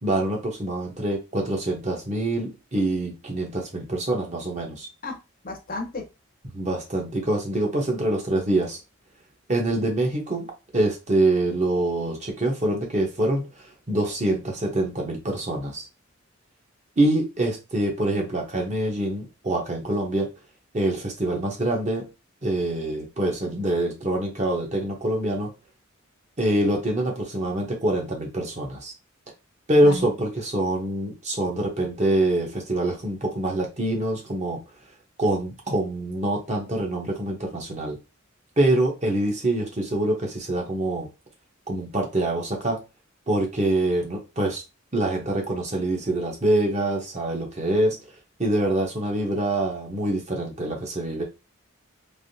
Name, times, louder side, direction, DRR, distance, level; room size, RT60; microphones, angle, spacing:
voice 1, 0.0-4.9 6.5-8.8 9.5-10.5 10.7-13.5 13.9-15.8 17.0-20.3 20.7-22.0 22.4-25.5 26.4-28.9 29.7-34.6 35.2-38.0 38.6-41.1 41.7-42.8 43.3-44.6 44.9-48.0 48.4-51.2, right 1 dB, 30° right, 1 dB, 0.8 m, -25 dB
voice 2, 5.4-6.1 29.8-30.1, left 2 dB, 40° left, 3 dB, 0.6 m, -33 dB
3.3 x 2.6 x 2.6 m, 0.27 s
head